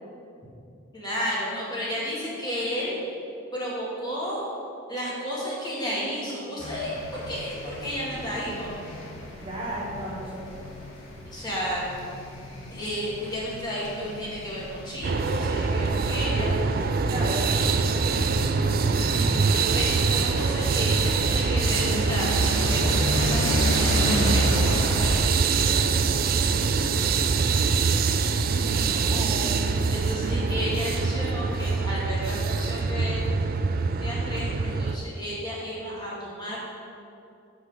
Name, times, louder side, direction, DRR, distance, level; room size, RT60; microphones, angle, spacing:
voice 1, 0.9-3.0 3.5-4.4 4.9-8.7 11.3-11.9 12.7-16.6 19.0-26.2 28.7-29.5 29.9-33.2 34.0-36.6, equal, 20° left, -6 dB, 2.0 m, -32 dB
sound 1, 6.6-25.2, left 1 dB, 85° left, 1.5 m, -32 dB
voice 2, 8.1-8.4 9.4-10.4 17.0-18.2 19.4-20.1, right 1 dB, 25° right, -5 dB, 1.2 m, -36 dB
sound 2, 15.0-35.0, right 5 dB, 45° right, 0.4 m, -24 dB
8.2 x 5.9 x 4.9 m, 2.6 s
head